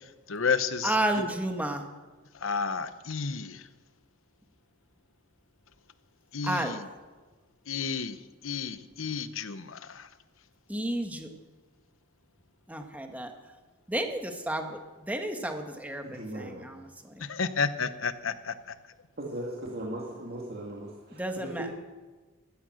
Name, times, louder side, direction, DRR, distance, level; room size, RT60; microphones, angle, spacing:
voice 1, 0.3-1.3 2.4-3.6 6.3-6.8 7.7-8.2 8.4-10.1 17.2-18.5, left 5 dB, 75° left, 12 dB, 0.9 m, -31 dB
voice 2, 0.8-1.8 6.4-6.7 10.7-11.3 12.7-13.3 13.9-14.8 15.1-17.2 21.2-21.6, right 1 dB, 10° right, 4 dB, 1.4 m, -31 dB
voice 3, 16.0-16.7 19.2-21.7, right 1 dB, 50° right, -3 dB, 2.3 m, -38 dB
16.0 x 13.0 x 6.4 m, 1.3 s
head